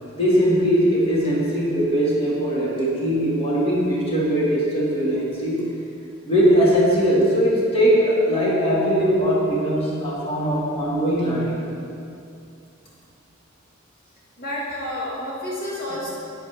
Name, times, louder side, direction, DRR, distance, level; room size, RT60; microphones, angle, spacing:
voice 1, 0.1-5.7 6.3-11.6 15.9-16.1, equal, 30° left, -7 dB, 2.1 m, -20 dB
voice 2, 14.4-16.1, left 1 dB, 50° left, -7 dB, 1.9 m, -30 dB
11.0 x 9.0 x 3.5 m, 2.5 s
head